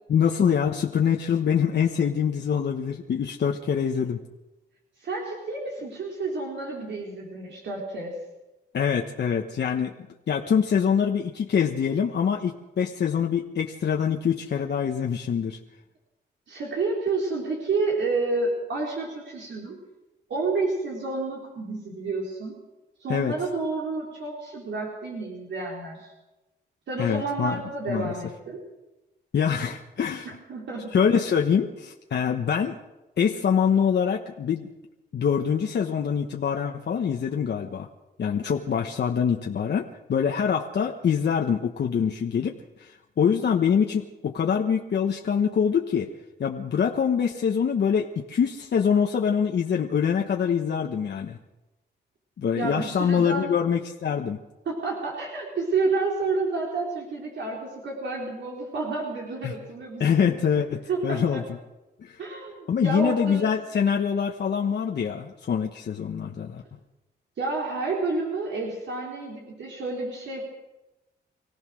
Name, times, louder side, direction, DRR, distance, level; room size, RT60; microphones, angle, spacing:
voice 1, 0.1-4.2 8.7-9.9 10.3-15.6 23.1-23.3 27.0-27.6 27.9-28.1 29.3-30.3 30.9-32.8 33.2-34.7 35.1-37.9 38.2-46.1 46.4-51.4 52.4-54.4 59.4-59.5 60.0-61.4 62.0-62.2 62.7-66.6, left 7 dB, 70° left, 2 dB, 1.3 m, -24 dB
voice 2, 5.0-8.1 16.5-19.8 20.3-22.6 23.0-26.1 26.9-28.6 30.2-30.9 52.6-53.5 54.7-60.2 60.9-61.4 62.2-63.4 67.4-70.4, right 3 dB, 80° right, -2 dB, 4.1 m, -30 dB
25.5 x 16.5 x 6.3 m, 1.0 s
cardioid pair, 85°, 18 cm